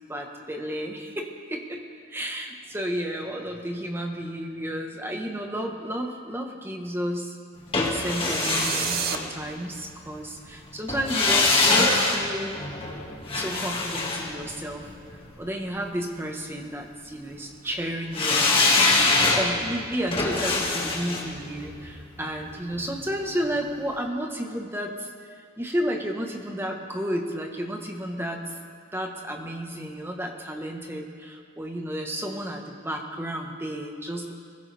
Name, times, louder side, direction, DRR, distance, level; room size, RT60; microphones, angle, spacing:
voice 1, 0.1-1.8 2.1-7.4 7.7-12.6 13.3-14.9 15.4-28.6 28.9-34.3, equal, 10° right, 2 dB, 1.2 m, -32 dB
sound 1, 7.7-9.8 10.9-15.1 18.1-23.1 23.4-23.5, left 3 dB, 25° left, 2.0 m, -24 dB
sound 2, 8.0-9.2, right 9 dB, 45° right, 0.6 m, -30 dB
21.5 x 16.0 x 3.4 m, 2.2 s
head